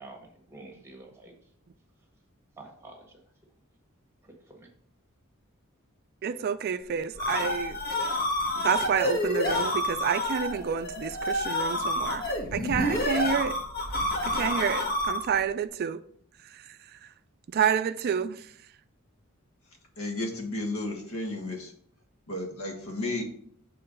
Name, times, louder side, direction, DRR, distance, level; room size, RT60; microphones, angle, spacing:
voice 1, 0.0-1.3 2.6-3.0 4.2-4.7, right 2 dB, 15° right, 1.5 m, -48 dB
voice 2, 6.2-7.8 8.6-12.2 12.5-13.6 14.2-16.0 17.5-18.4, right 7 dB, 50° right, 0.3 m, -29 dB
sound 1, 6.9-15.4, left 1 dB, 50° left, 1.4 m, -29 dB
voice 3, 20.0-21.7 22.3-23.2, left 2 dB, 80° left, 1.5 m, -33 dB
6.9 x 3.8 x 5.3 m
head